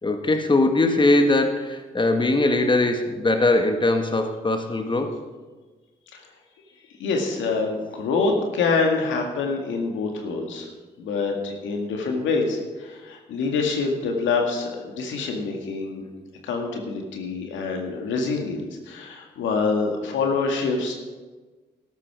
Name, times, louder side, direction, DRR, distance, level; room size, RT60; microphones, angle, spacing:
voice 1, 0.0-5.2, left 2 dB, 25° left, 6 dB, 1.6 m, -21 dB
voice 2, 7.0-10.7 11.0-16.0 16.4-20.9, left 4 dB, 80° left, 2 dB, 1.9 m, -26 dB
13.0 x 12.0 x 4.8 m, 1.3 s
hypercardioid pair, 45°, 19 cm